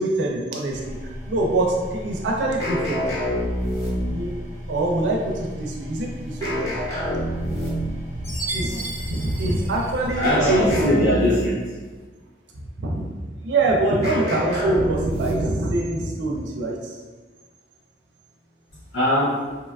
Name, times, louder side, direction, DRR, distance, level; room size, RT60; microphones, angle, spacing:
voice 1, 0.0-3.1 4.1-4.3 4.7-6.8 7.5-7.7 8.2-8.8 9.1-11.1 12.8-13.2 13.4-17.0, right 2 dB, 80° right, -1 dB, 0.4 m, -24 dB
sound 1, 0.7-10.8, left 1 dB, 20° right, 0.5 m, -36 dB
sound 2, 2.6-4.4 6.4-8.1 10.2-11.8 14.0-15.6, equal, 15° left, 0.7 m, -27 dB
Chime, 8.2-10.6, right 2 dB, 50° left, 0.9 m, -34 dB
voice 2, 10.2-11.7 18.9-19.4, equal, 65° left, -10 dB, 0.6 m, -20 dB
2.8 x 2.3 x 2.2 m, 1.3 s
head